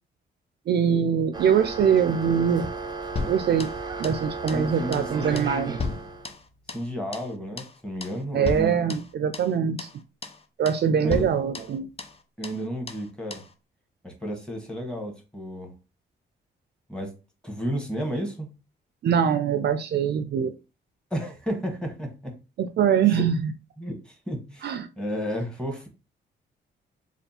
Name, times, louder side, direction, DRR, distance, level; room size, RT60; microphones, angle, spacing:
voice 1, 0.7-2.7 3.3-3.7 4.0-5.8 8.3-9.9 10.6-11.9 19.0-20.5 22.6-23.5 24.6-24.9, right 7 dB, 60° right, 10 dB, 0.5 m, -23 dB
sound 1, 1.3-6.3, right 4 dB, 20° right, 0.8 m, -35 dB
sound 2, 3.2-4.2 4.5-4.7 4.9-5.1 5.4-6.9 7.1-7.3 7.6-7.8 8.0-8.2 8.4-9.5 9.8-10.0 10.2-10.4 10.7-10.8 11.1-12.2 12.4-12.6 12.9-13.1 13.3-13.5, left 4 dB, 30° left, 0.7 m, -35 dB
voice 2, 4.5-5.9 6.7-8.9 11.0-11.3 12.4-13.4 14.0-15.7 16.9-17.1 17.4-18.5 21.1-22.3 23.0-23.2 23.8-25.9, equal, 5° left, 2 dB, 1.6 m, -32 dB
3.3 x 2.4 x 4.2 m, 0.30 s
cardioid pair, 75°, 19 cm